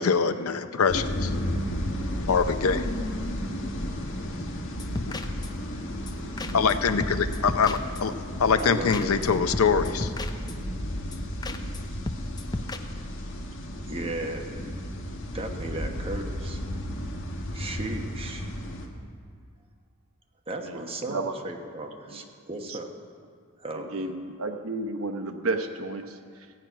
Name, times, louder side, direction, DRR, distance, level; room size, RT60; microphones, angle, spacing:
voice 1, 0.0-1.4 2.1-2.8 4.4-4.5 4.9-5.2 6.5-8.1 8.4-10.1, left 5 dB, 80° left, 10 dB, 0.6 m, -24 dB
sound 1, 0.9-18.9, equal, 60° left, 1.3 m, -33 dB
sound 2, 4.7-5.7 6.1-6.2 6.4-6.7 7.0-8.2 8.6-8.7 8.9-9.3 9.5-10.8 11.1-11.2 11.4-11.8 12.1-12.8, left 2 dB, 20° left, 0.5 m, -35 dB
voice 2, 8.5-9.4 13.9-14.7 15.3-16.6 17.5-18.5 20.5-22.9 23.6-24.0, right 2 dB, 25° right, 3 dB, 1.1 m, -36 dB
voice 3, 20.6-21.3 22.1-22.2 22.7-22.8 23.7-26.5, right 2 dB, 70° right, 6 dB, 1.0 m, -32 dB
15.0 x 6.0 x 9.2 m, 2.1 s
head